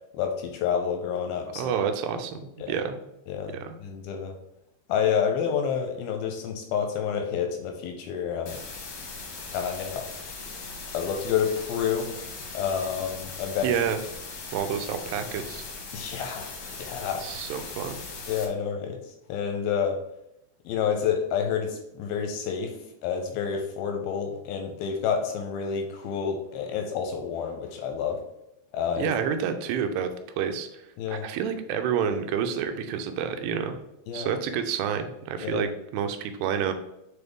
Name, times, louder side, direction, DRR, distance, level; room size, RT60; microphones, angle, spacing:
voice 1, 0.1-1.7 2.6-2.7 3.3-4.3 4.9-8.6 9.5-10.1 10.9-12.2 12.5-13.8 15.9-17.3 18.3-20.0 20.7-22.7 23.0-28.2 28.7-29.1 31.0-31.2 34.1-34.3 35.4-35.7, left 7 dB, 80° left, 4 dB, 2.3 m, -29 dB
voice 2, 1.6-3.0 3.5-3.8 13.6-14.0 14.5-15.6 17.2-18.0 29.0-30.1 30.4-30.8 31.1-33.8 34.1-36.7, right 7 dB, 90° right, 8 dB, 2.7 m, -29 dB
sound 1, 8.5-18.5, left 4 dB, 65° left, 1.6 m, -39 dB
7.0 x 3.9 x 3.5 m, 0.86 s
omnidirectional pair, 4.7 m